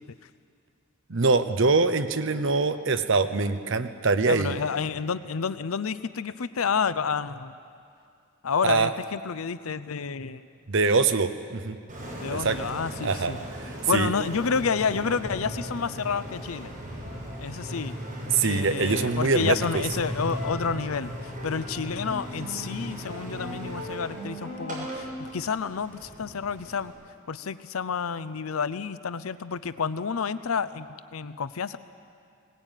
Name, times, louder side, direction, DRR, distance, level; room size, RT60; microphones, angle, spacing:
voice 1, 1.1-4.6 8.6-8.9 10.7-11.8 12.3-12.6 13.0-14.1 18.3-19.8, right 4 dB, 65° right, 9 dB, 0.9 m, -24 dB
voice 2, 4.3-7.6 8.4-10.5 12.2-13.4 13.9-16.7 17.4-18.0 18.4-26.9 27.3-31.8, left 6 dB, 85° left, 14 dB, 0.6 m, -29 dB
Engine, 11.9-26.9, equal, 40° right, 6.5 m, -37 dB
20.5 x 19.0 x 9.1 m, 2.4 s
head